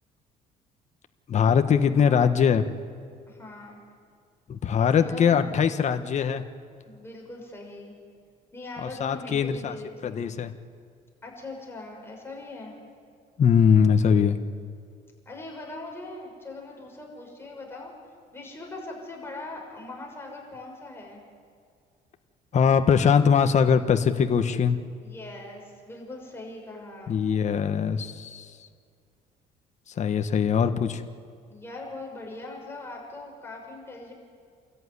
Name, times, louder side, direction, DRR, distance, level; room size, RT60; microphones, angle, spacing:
voice 1, 1.3-2.6 4.5-6.4 8.8-9.7 10.0-10.5 13.4-14.4 22.5-24.8 27.1-28.5 30.0-31.0, left 7 dB, 45° left, 8 dB, 1.3 m, -21 dB
voice 2, 1.9-2.3 3.3-3.8 4.8-5.6 6.8-8.0 8.5-10.3 11.2-12.7 15.2-17.9 18.3-21.2 25.0-27.2 31.4-34.1, left 2 dB, 15° left, -1 dB, 6.1 m, -41 dB
28.5 x 14.0 x 9.8 m, 2.2 s
cardioid pair, 110°, 17 cm